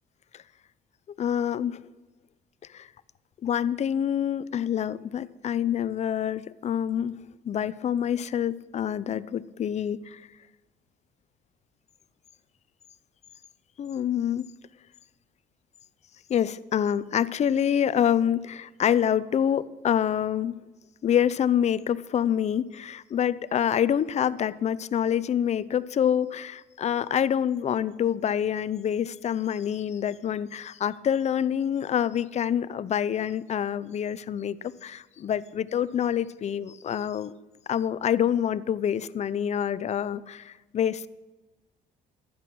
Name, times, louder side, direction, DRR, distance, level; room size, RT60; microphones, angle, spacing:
voice 1, 1.2-1.8 2.7-2.9 3.4-7.2 7.4-10.2 13.8-14.4 16.3-20.5 21.0-37.3 37.7-41.1, left 9 dB, 40° left, 18 dB, 0.6 m, -26 dB
15.0 x 11.0 x 6.1 m, 1.2 s
cardioid pair, 110°, 17 cm